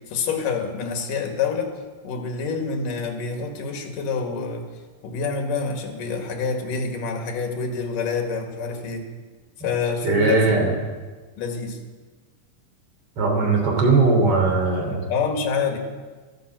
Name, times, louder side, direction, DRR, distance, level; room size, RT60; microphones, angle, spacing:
voice 1, 0.1-1.7 2.0-4.6 5.0-9.0 9.6-10.6 11.4-11.8 15.1-15.8, left 5 dB, 70° left, 3 dB, 3.4 m, -27 dB
voice 2, 10.0-10.7 13.2-15.1, right 3 dB, 40° right, 1 dB, 3.9 m, -19 dB
13.0 x 13.0 x 7.6 m, 1.4 s
omnidirectional pair, 4.0 m